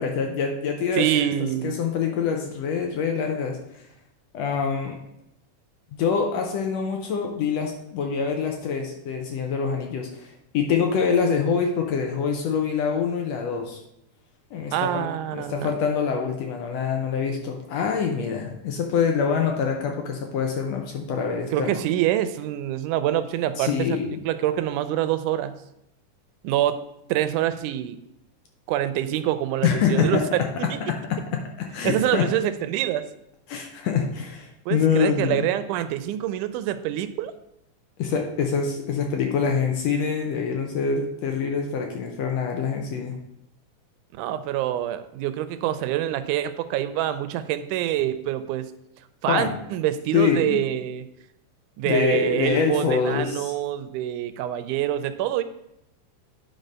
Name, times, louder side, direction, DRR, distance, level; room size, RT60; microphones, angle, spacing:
voice 1, 0.0-1.1 1.6-3.6 4.3-5.0 5.9-13.8 14.5-15.1 15.3-21.8 23.6-24.2 29.6-30.4 30.9-32.3 33.5-35.5 38.0-43.1 49.3-49.6 50.1-50.6 51.9-53.5, left 6 dB, 70° left, 2 dB, 1.7 m, -25 dB
voice 2, 1.0-1.8 14.7-15.7 21.5-25.5 26.4-26.8 27.1-28.0 28.7-30.8 31.8-33.1 34.7-37.3 44.2-48.7 49.2-51.1 51.8-55.4, right 12 dB, 85° right, 12 dB, 2.0 m, -26 dB
9.2 x 3.8 x 5.4 m, 0.81 s
omnidirectional pair, 3.6 m